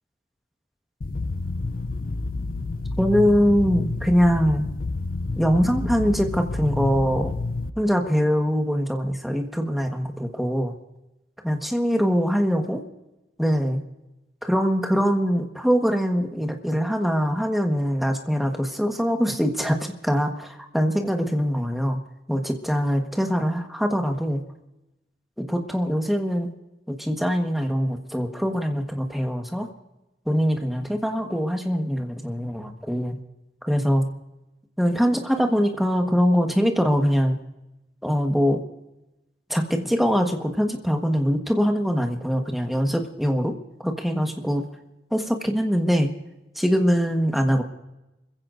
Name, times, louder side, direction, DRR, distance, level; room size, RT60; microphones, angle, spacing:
sound 1, 1.0-7.7, left 3 dB, 55° left, 0.6 m, -29 dB
voice 1, 3.0-4.7 5.4-7.3 7.8-10.8 11.4-12.8 13.4-13.8 14.4-22.0 22.3-24.4 25.4-26.5 26.9-29.7 30.2-33.2 33.6-34.0 34.8-37.4 38.0-38.6 39.5-43.5 43.8-44.6 45.1-46.1 46.5-47.6, equal, ahead, 3 dB, 1.3 m, -23 dB
26.5 x 15.5 x 2.6 m, 0.98 s
head